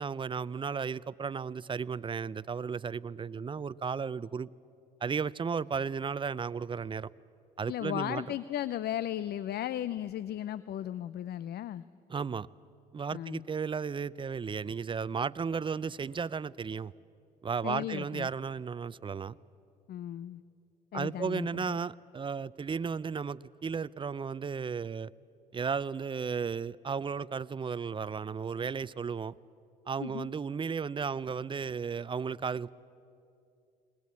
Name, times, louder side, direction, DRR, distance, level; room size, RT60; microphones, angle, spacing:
voice 1, 0.0-4.5 5.0-7.1 7.6-8.2 12.1-12.5 12.9-16.9 17.4-19.4 20.9-25.1 25.5-29.3 29.9-32.7, right 6 dB, 25° right, 0.5 m, -34 dB
voice 2, 7.7-11.8 13.1-13.4 17.6-18.3 19.9-20.4 20.9-21.8 30.0-30.3, left 12 dB, 55° left, 0.5 m, -36 dB
20.5 x 20.5 x 8.4 m
supercardioid pair, 65°, 19 cm